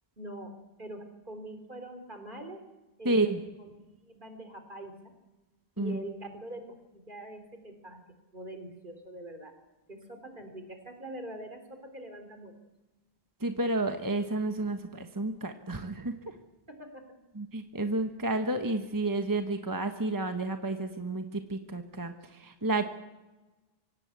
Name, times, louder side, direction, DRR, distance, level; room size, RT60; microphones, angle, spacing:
voice 1, 0.2-0.5 0.8-2.6 3.0-3.7 4.0-4.9 5.8-8.0 8.3-9.5 9.9-12.6 16.7-17.0, right 1 dB, 50° right, 7 dB, 3.7 m, -43 dB
voice 2, 3.0-3.4 5.8-6.0 13.4-16.1 17.3-22.9, right 2 dB, 20° right, 6 dB, 1.3 m, -31 dB
25.0 x 17.5 x 8.4 m, 1.1 s
omnidirectional pair, 1.1 m